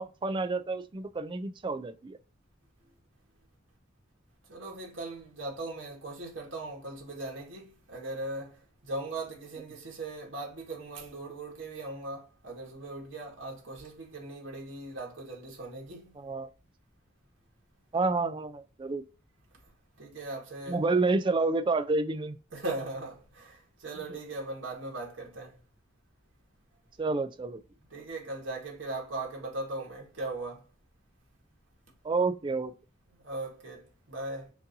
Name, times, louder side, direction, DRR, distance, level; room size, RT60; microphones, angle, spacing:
voice 1, 0.0-2.2 16.2-16.5 17.9-19.0 20.7-22.4 27.0-27.6 32.0-32.7, right 3 dB, 25° right, 0.4 m, -29 dB
voice 2, 4.5-16.2 20.0-20.8 22.5-25.6 27.9-30.6 33.1-34.5, right 2 dB, 75° right, 1.8 m, -39 dB
6.1 x 2.8 x 2.6 m
head